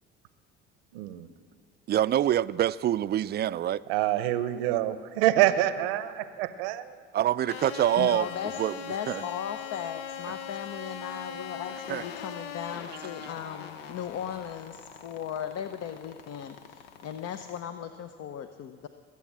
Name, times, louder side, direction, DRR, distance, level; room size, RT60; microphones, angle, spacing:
voice 1, 0.9-1.3 3.9-6.1 6.4-6.8, right 14 dB, 80° right, 13 dB, 0.8 m, -26 dB
voice 2, 1.9-3.8 7.1-8.3 8.6-8.8 9.1-9.2 11.9-12.0, right 11 dB, 35° right, 18 dB, 0.4 m, -25 dB
sound 1, 7.5-17.6, left 7 dB, 85° left, 0.9 m, -41 dB
voice 3, 8.0-18.9, left 9 dB, 55° left, 9 dB, 0.8 m, -37 dB
21.5 x 8.4 x 7.4 m, 2.1 s
hypercardioid pair, 70°, 29 cm